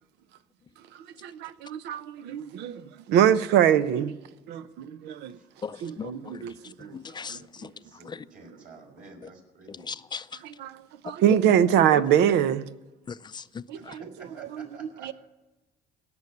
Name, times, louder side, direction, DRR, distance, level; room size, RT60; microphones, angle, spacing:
voice 1, 1.2-2.8 3.1-4.1 4.5-5.4 5.8-7.0 7.3-7.4 10.4-12.7 13.7-14.0 14.5-14.7 15.0-15.1, right 10 dB, 85° right, 0.7 m, -24 dB
voice 2, 5.6-7.7 8.0-8.2 9.7-10.4 11.0-11.4 11.9-12.0 13.1-14.0, left 6 dB, 25° left, 0.5 m, -38 dB
voice 3, 7.8-10.0 13.7-15.1, right 3 dB, 55° right, 4.9 m, -49 dB
17.5 x 7.1 x 9.4 m
cardioid pair, 110°, 17 cm